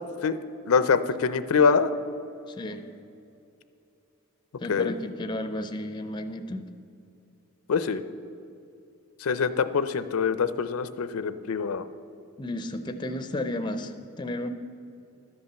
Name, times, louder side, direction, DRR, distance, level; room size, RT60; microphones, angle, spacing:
voice 1, 0.7-1.9 4.7-4.9 7.7-8.0 9.2-11.9, left 5 dB, 80° left, 13 dB, 0.5 m, -24 dB
voice 2, 2.5-2.8 4.6-6.7 12.4-14.5, left 1 dB, 20° left, 9 dB, 0.4 m, -33 dB
12.5 x 5.4 x 7.0 m, 2.7 s
head